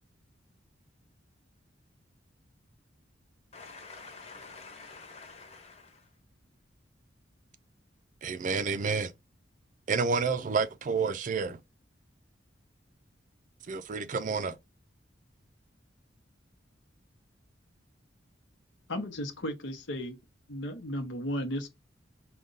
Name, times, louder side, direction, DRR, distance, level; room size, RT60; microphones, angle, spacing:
voice 1, 3.5-6.0, left 4 dB, 35° left, 1.1 m, -48 dB
voice 2, 8.2-9.1 9.9-11.6 13.7-14.6, right 5 dB, 45° right, 0.4 m, -29 dB
voice 3, 18.9-20.2 20.5-21.7, equal, 75° left, 0.8 m, -34 dB
5.0 x 2.2 x 3.8 m
head